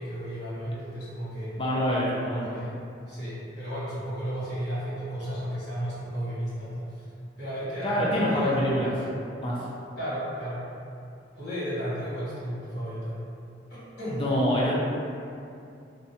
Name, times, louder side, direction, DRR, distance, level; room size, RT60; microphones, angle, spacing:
voice 1, 0.0-1.5 2.4-2.7 3.1-7.0 7.4-8.6 10.0-10.6 11.4-13.2 13.7-14.2, equal, 85° left, -11 dB, 1.3 m, -33 dB
voice 2, 1.6-2.5 7.8-8.9 9.4-9.6 14.2-14.7, equal, 30° left, -5 dB, 0.4 m, -25 dB
2.5 x 2.2 x 2.6 m, 2.5 s
head